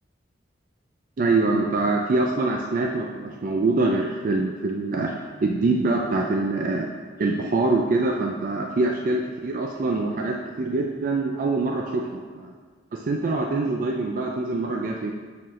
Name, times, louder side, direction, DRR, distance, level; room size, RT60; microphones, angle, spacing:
voice 1, 1.2-6.9 7.2-12.5 12.9-15.1, right 3 dB, 50° right, 1 dB, 0.3 m, -24 dB
7.4 x 4.4 x 3.1 m, 1.5 s
head